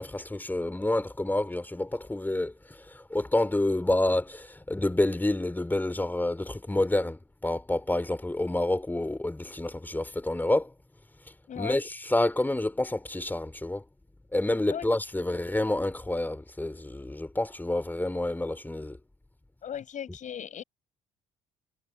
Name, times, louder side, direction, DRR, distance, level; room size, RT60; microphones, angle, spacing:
voice 1, 0.0-10.7 11.6-13.8 14.3-19.0, left 1 dB, 10° left, 4.0 m, -28 dB
voice 2, 11.5-11.8 14.7-14.9 19.6-20.6, left 9 dB, 50° left, 7.4 m, -37 dB
hypercardioid pair, 55°, 16 cm